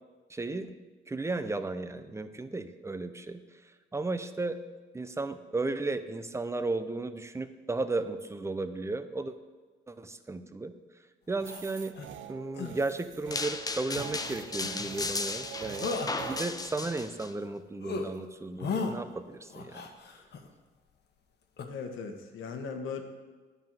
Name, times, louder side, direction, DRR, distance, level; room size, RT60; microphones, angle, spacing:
voice 1, 0.3-0.7 1.1-3.4 3.9-4.6 4.9-9.3 9.9-10.7 11.3-11.9 12.3-19.9, right 3 dB, 15° right, 10 dB, 0.7 m, -34 dB
sound 1, 11.4-16.4, right 12 dB, 75° right, 0.6 m, -45 dB
sound 2, 11.5-12.1 12.5-12.8 13.9-14.1 14.6-14.9 15.2-15.5 15.8-16.1 16.6-17.5 17.8-18.1 18.6-18.9 19.5-20.5 21.6-21.7, left 4 dB, 55° left, 1.3 m, -36 dB
sound 3, 13.3-17.3, left 3 dB, 20° left, 0.7 m, -35 dB
voice 2, 21.7-23.0, left 5 dB, 80° left, 5 dB, 1.4 m, -38 dB
10.0 x 5.7 x 7.5 m, 1.4 s
cardioid pair, 90°, 20 cm